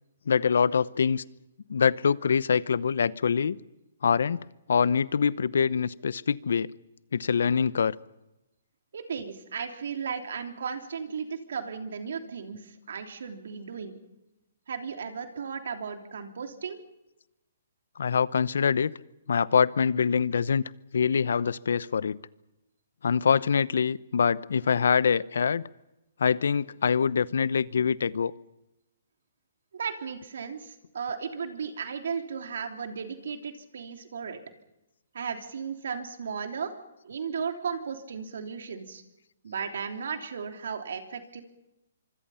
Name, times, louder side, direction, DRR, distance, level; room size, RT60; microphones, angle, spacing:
voice 1, 0.3-1.2 1.7-3.6 4.0-4.4 4.7-6.7 7.1-7.9 18.0-18.9 19.3-20.6 20.9-22.2 23.0-25.6 26.2-28.3, left 6 dB, 75° left, 19 dB, 0.8 m, -24 dB
voice 2, 8.9-14.0 14.7-16.8 29.7-34.4 35.1-36.7 37.0-39.0 39.4-41.4, right 6 dB, 70° right, 5 dB, 3.2 m, -35 dB
26.0 x 24.5 x 5.7 m, 0.94 s
hypercardioid pair, 140°, 0 cm